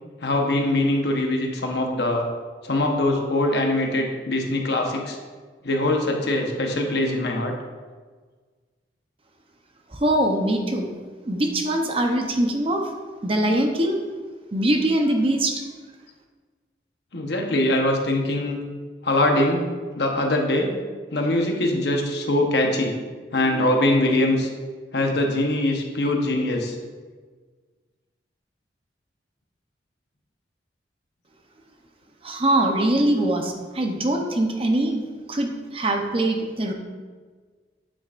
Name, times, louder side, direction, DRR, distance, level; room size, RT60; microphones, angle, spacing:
voice 1, 0.2-2.3 2.6-5.2 5.6-7.5 17.1-18.7 19.0-19.7 19.9-20.7 21.1-23.0 23.3-24.5 24.9-26.7, left 1 dB, 65° left, 2 dB, 1.0 m, -22 dB
voice 2, 9.9-10.9 11.2-12.8 13.2-14.0 14.5-15.6 32.2-35.0 35.3-36.7, right 1 dB, 30° right, 3 dB, 0.7 m, -22 dB
8.9 x 7.4 x 2.5 m, 1.5 s
head